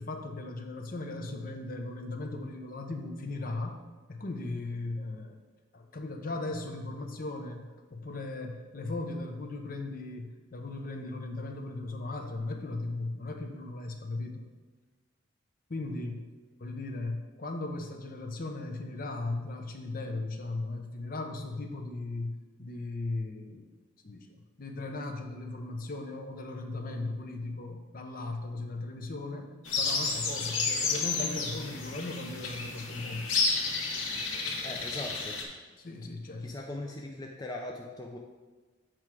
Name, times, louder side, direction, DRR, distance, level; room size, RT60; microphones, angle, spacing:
voice 1, 0.0-3.8 4.1-5.4 5.7-14.5 15.7-16.2 16.6-23.7 24.0-24.3 24.6-33.3 35.8-36.5, left 2 dB, 45° left, 4 dB, 0.8 m, -37 dB
sound 1, 29.7-35.4, left 4 dB, 85° left, 1.2 m, -31 dB
voice 2, 34.6-35.4 36.4-38.2, left 2 dB, 20° left, 0 dB, 0.5 m, -40 dB
7.7 x 4.7 x 4.7 m, 1.3 s
head